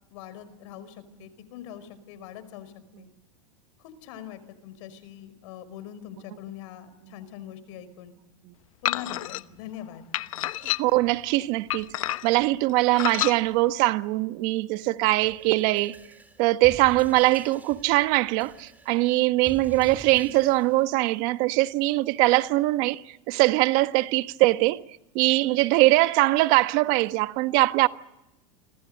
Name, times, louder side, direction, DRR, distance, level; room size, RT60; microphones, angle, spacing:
voice 1, 0.1-3.1 3.8-8.1 8.8-10.0, left 10 dB, 65° left, 5.0 m, -43 dB
sound 1, 8.8-9.4 10.1-11.1 11.7-12.4 12.9-13.4, left 15 dB, 85° left, 1.0 m, -29 dB
voice 2, 10.8-11.9 12.2-16.0 16.4-24.8 25.1-27.9, right 19 dB, 55° right, 1.4 m, -22 dB
sound 2, 15.2-20.9, right 3 dB, 10° right, 3.7 m, -46 dB
29.0 x 25.5 x 6.6 m
supercardioid pair, 140°, 17 cm